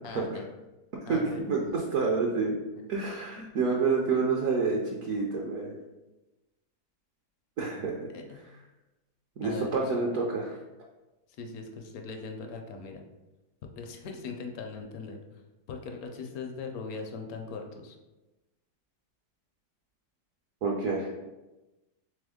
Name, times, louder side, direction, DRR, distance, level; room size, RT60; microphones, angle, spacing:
voice 1, 0.0-0.5 1.1-1.5 3.4-3.5 8.1-8.5 9.4-9.8 11.4-13.0 13.8-15.2 15.7-18.0, left 4 dB, 70° left, 4 dB, 0.9 m, -40 dB
voice 2, 1.1-2.6 2.9-5.7 7.6-8.1 9.4-10.6 20.6-21.1, right 4 dB, 65° right, -2 dB, 0.9 m, -28 dB
3.6 x 3.4 x 3.5 m, 1.1 s
omnidirectional pair, 1.8 m